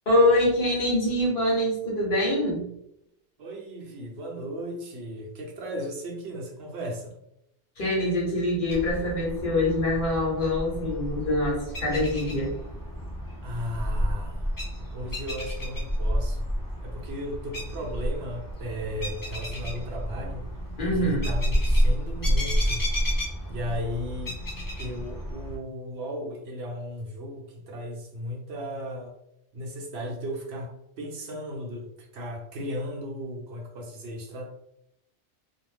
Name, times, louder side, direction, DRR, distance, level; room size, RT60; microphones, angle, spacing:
voice 1, 0.1-2.7 7.8-12.5 20.8-21.3, left 1 dB, 50° left, -4 dB, 1.0 m, -24 dB
voice 2, 3.4-7.1 13.4-16.4 16.8-20.5 21.0-22.8 23.5-24.4 24.8-29.1 29.5-34.6, equal, 70° right, 0 dB, 0.8 m, -36 dB
sound 1, 8.7-25.6, equal, 30° left, 0.4 m, -30 dB
2.5 x 2.1 x 3.1 m, 0.81 s
omnidirectional pair, 1.2 m